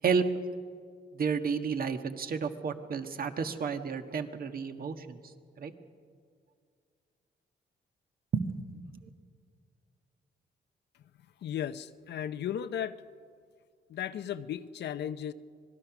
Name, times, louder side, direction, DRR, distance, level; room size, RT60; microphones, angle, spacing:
voice 1, 1.1-5.2 5.6-5.7 8.3-8.6 8.9-9.0, right 6 dB, 55° right, 7 dB, 1.5 m, -31 dB
voice 2, 11.4-13.0 13.9-15.3, left 9 dB, 75° left, 11 dB, 0.7 m, -35 dB
25.5 x 19.5 x 6.0 m, 2.1 s
cardioid pair, 90°, 18 cm